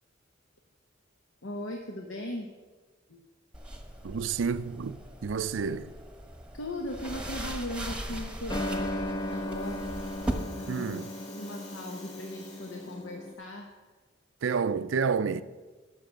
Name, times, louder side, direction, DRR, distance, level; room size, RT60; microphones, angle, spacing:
voice 1, 1.4-2.5 3.1-3.2 6.5-9.9 10.6-10.9 11.3-13.7, left 1 dB, 75° left, 1.0 m, -38 dB
sound 1, 3.5-10.3, right 1 dB, 5° right, 1.1 m, -39 dB
voice 2, 4.0-5.9 10.7-11.1 14.4-15.4, right 5 dB, 70° right, 0.4 m, -30 dB
sound 2, 8.5-13.3, left 1 dB, 20° left, 0.5 m, -36 dB
Rattle (instrument), 8.9-13.4, left 3 dB, 35° left, 3.4 m, -53 dB
12.0 x 6.4 x 6.4 m
head